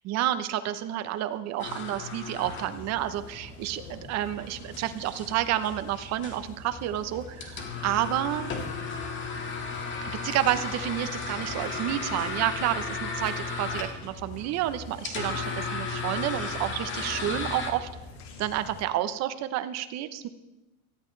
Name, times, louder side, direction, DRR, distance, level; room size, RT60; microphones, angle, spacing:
voice 1, 0.0-8.5 10.0-17.9 18.4-20.3, right 12 dB, 40° right, 11 dB, 0.9 m, -30 dB
sound 1, 1.6-17.7, left 4 dB, 25° left, 2.0 m, -36 dB
sound 2, 2.4-18.8, left 3 dB, 85° left, 2.9 m, -45 dB
18.0 x 13.5 x 3.3 m, 1.0 s
supercardioid pair, 140°, 43 cm